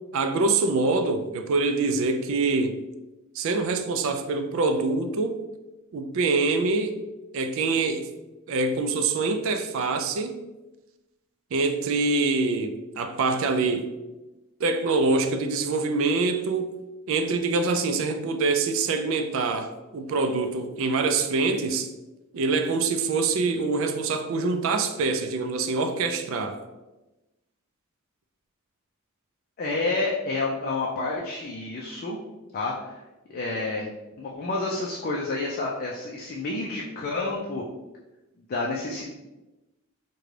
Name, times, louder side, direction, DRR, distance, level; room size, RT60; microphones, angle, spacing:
voice 1, 0.1-2.8 3.4-5.4 5.9-7.0 7.3-8.1 8.5-10.4 11.5-13.9 14.6-16.8 17.1-21.9 22.3-26.6, right 3 dB, 60° right, 0.4 m, -25 dB
voice 2, 29.6-32.2 32.5-33.0 33.3-37.6 38.5-39.1, left 3 dB, 45° left, 0.4 m, -29 dB
3.7 x 2.2 x 3.2 m
head